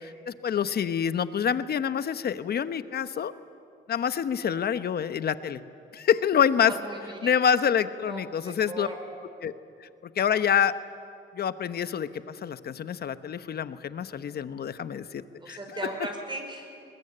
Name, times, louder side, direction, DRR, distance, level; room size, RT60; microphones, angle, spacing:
voice 1, 0.0-3.3 3.9-5.6 5.9-6.7 7.2-8.9 9.4-9.5 9.8-10.7 11.3-15.6, left 8 dB, 50° left, 13 dB, 1.0 m, -27 dB
voice 2, 6.7-7.4 8.0-9.0 15.4-16.7, right 2 dB, 25° right, 2 dB, 5.5 m, -38 dB
21.5 x 20.0 x 8.8 m, 2.5 s
cardioid pair, 90°, 20 cm